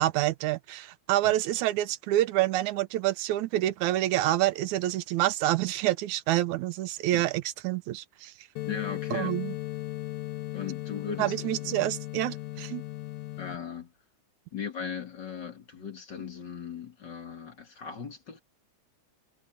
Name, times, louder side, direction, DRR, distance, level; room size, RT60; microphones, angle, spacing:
voice 1, 0.0-8.3 9.1-9.5 11.2-12.8, right 15 dB, 85° right, 2.2 m, -27 dB
sound 1, 8.6-13.6, left 16 dB, 70° left, 2.3 m, -37 dB
voice 2, 8.7-9.3 10.5-11.8 13.4-13.9 14.5-18.4, left 6 dB, 40° left, 2.2 m, -38 dB
omnidirectional pair, 3.3 m